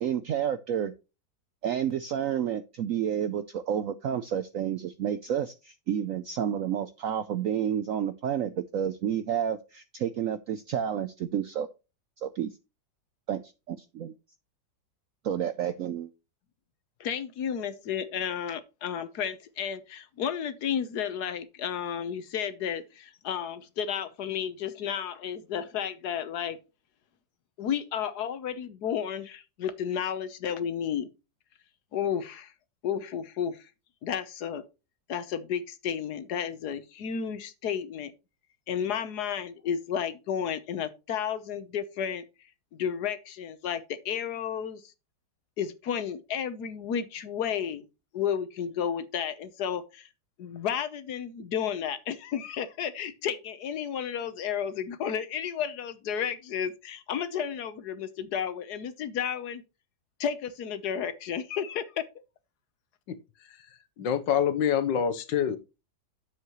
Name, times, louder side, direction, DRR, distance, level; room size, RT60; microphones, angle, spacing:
voice 1, 0.0-0.9 1.6-11.7 12.2-12.5 13.3-14.1 15.2-16.1, right 9 dB, 75° right, 0.7 m, -30 dB
voice 2, 17.0-26.6 27.6-31.1 31.9-32.5 32.8-33.6 34.0-34.6 35.1-38.1 38.7-42.2 42.7-44.8 45.6-47.8 48.1-50.1 50.4-59.6 60.2-62.1, left 8 dB, 65° left, 1.4 m, -32 dB
voice 3, 64.0-65.6, left 8 dB, 80° left, 1.6 m, -25 dB
9.5 x 7.4 x 3.0 m
omnidirectional pair, 2.0 m